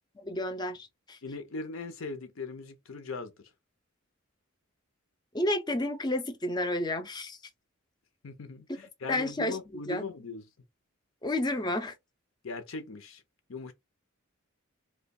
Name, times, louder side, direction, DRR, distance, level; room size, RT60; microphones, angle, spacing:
voice 1, 0.2-1.2 5.3-7.4 9.1-9.6 9.9-10.0 11.2-11.9, left 1 dB, 20° left, 0.5 m, -31 dB
voice 2, 1.2-3.5 8.2-10.5 12.4-13.2 13.5-13.7, left 3 dB, 70° left, 0.7 m, -39 dB
2.9 x 2.2 x 4.0 m
head